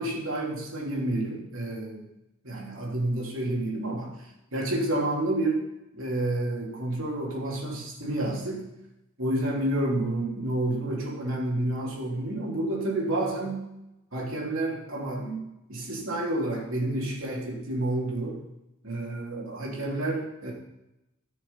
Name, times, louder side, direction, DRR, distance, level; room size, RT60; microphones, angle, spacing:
voice 1, 0.0-2.0 2.4-4.1 4.5-5.6 5.9-8.7 9.2-13.7 14.1-15.4 15.7-18.4 18.8-20.5, right 1 dB, 75° right, -2 dB, 3.0 m, -29 dB
14.0 x 6.4 x 5.5 m, 0.92 s
head